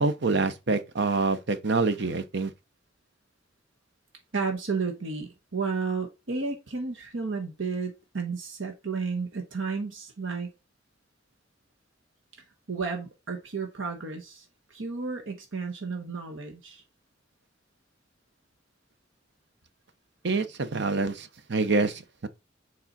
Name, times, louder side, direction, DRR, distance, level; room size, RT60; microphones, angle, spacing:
voice 1, 0.0-2.5 20.2-22.3, right 3 dB, 60° right, 0.8 m, -26 dB
voice 2, 4.3-10.5 12.7-14.4 14.7-16.8, right 4 dB, 85° right, 1.3 m, -32 dB
7.2 x 4.8 x 4.0 m
head